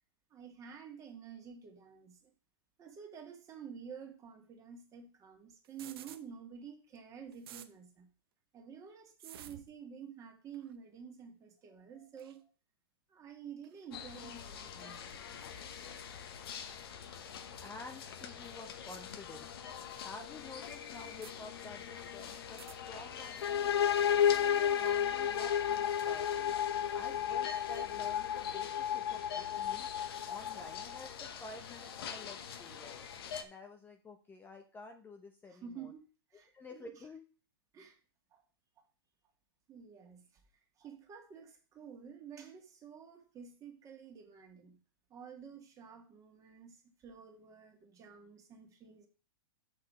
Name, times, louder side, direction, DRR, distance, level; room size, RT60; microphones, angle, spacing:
voice 1, 0.3-2.3 2.8-8.1 8.5-12.4 13.1-15.0 35.5-36.0 36.3-37.0 37.7-38.0 38.3-38.4 39.7-40.4 40.8-44.8 45.1-49.1, right 7 dB, 25° right, 3 dB, 2.0 m, -50 dB
sound 1, 5.6-6.2 7.0-7.1 7.3-7.7 9.2-9.7 10.5-10.7 12.2-12.4 13.6-13.8 15.1-15.2 16.5-16.6 18.0-18.1 19.5-19.6 19.9-20.0 21.0-21.3 22.4-22.8, right 10 dB, 65° right, 0.8 m, -52 dB
sound 2, 13.9-33.4, left 7 dB, 65° left, 1.2 m, -46 dB
voice 2, 17.6-23.7 24.2-26.5 26.9-29.9 30.2-32.9 33.4-35.9 36.5-37.2, left 3 dB, 15° left, 4 dB, 0.8 m, -50 dB
sound 3, 23.4-31.1, left 9 dB, 85° left, 0.5 m, -32 dB
6.6 x 5.8 x 5.5 m, 0.36 s
hypercardioid pair, 125°, 13 cm